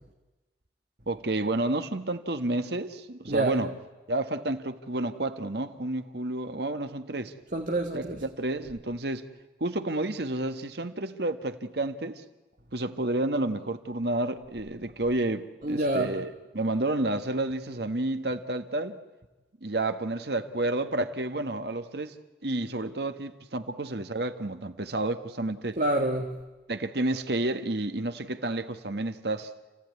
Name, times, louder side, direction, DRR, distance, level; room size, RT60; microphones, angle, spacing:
voice 1, 1.1-3.7 4.1-7.3 7.9-9.3 9.6-12.2 12.7-19.0 19.6-22.1 22.4-25.8 26.7-29.5, right 2 dB, 70° right, 1.4 m, -30 dB
voice 2, 7.5-8.2 15.6-16.1 25.8-26.4, right 1 dB, 50° right, 1.6 m, -27 dB
29.0 x 16.0 x 9.5 m
head